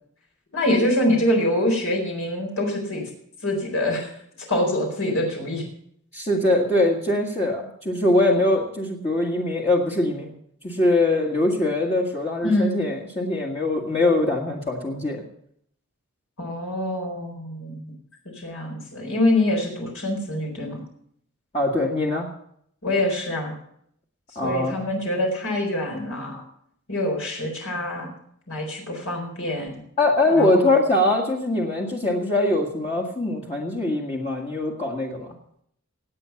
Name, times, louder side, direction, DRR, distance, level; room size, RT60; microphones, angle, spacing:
voice 1, 0.5-3.1 3.4-4.1 4.5-5.6 12.4-12.8 16.4-17.9 18.2-20.8 22.8-23.5 24.4-26.4 26.9-28.1 28.5-29.7 30.4-30.7, left 1 dB, 70° left, 1 dB, 4.4 m, -25 dB
voice 2, 6.1-10.3 10.6-15.2 21.5-22.3 24.3-24.7 30.0-35.3, left 2 dB, 30° left, -3 dB, 1.7 m, -22 dB
18.5 x 8.7 x 5.8 m, 0.70 s
head